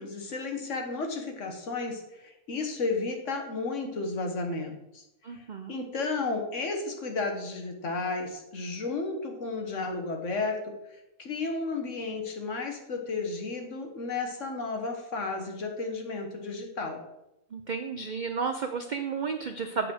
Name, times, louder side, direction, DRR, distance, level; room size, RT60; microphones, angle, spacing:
voice 1, 0.0-5.0 5.3-5.4 5.7-17.0, left 3 dB, 60° left, 3 dB, 1.6 m, -33 dB
voice 2, 5.2-5.8 17.5-19.9, right 5 dB, 85° right, 6 dB, 0.4 m, -32 dB
7.4 x 4.9 x 6.3 m, 0.88 s
omnidirectional pair, 1.5 m